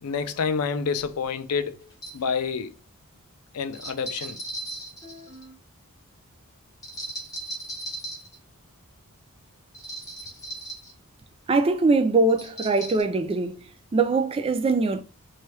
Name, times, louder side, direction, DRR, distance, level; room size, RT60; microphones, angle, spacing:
voice 1, 0.0-1.9 2.1-2.7 3.5-4.4, left 5 dB, 80° left, 0.4 m, -28 dB
sound 1, 1.0-1.1 1.9-2.2 3.7-5.6 6.8-8.4 9.7-10.9 12.3-13.0, right 1 dB, 15° left, 1.0 m, -37 dB
voice 2, 11.5-13.6 13.9-15.0, right 3 dB, 25° right, 0.3 m, -22 dB
2.9 x 2.4 x 3.1 m
head